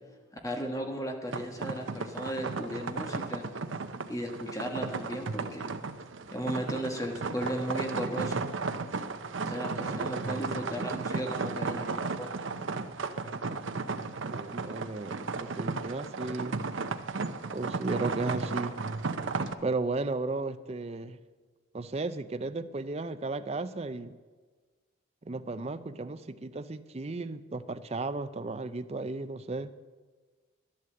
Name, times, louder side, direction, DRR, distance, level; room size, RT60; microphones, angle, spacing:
voice 1, 0.4-3.5 4.1-5.7 6.3-8.5 9.4-12.4, equal, 15° left, 2 dB, 1.4 m, -35 dB
sound 1, 1.3-19.5, right 4 dB, 70° right, 0.7 m, -34 dB
voice 2, 14.3-16.6 17.5-18.8 19.6-21.2 21.7-24.2 25.3-29.7, right 3 dB, 30° right, 11 dB, 0.5 m, -34 dB
11.5 x 11.0 x 7.7 m, 1.4 s
head